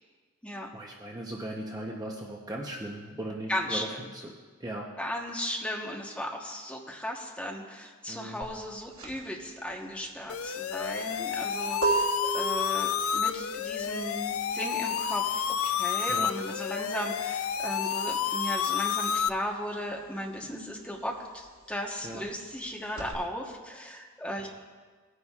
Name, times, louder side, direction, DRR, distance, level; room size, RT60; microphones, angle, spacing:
voice 1, 0.7-4.3 4.6-4.9 8.1-8.5 16.1-16.3 22.0-22.2, right 1 dB, 15° right, -1 dB, 0.7 m, -38 dB
voice 2, 3.5-4.0 5.0-24.5, equal, 5° left, 0 dB, 1.0 m, -36 dB
sound 1, 8.4-18.6 18.9-23.1, right 3 dB, 90° right, 2.2 m, -35 dB
sound 2, 10.3-19.3, left 7 dB, 70° left, 0.4 m, -30 dB
18.5 x 9.8 x 2.4 m, 1.5 s
head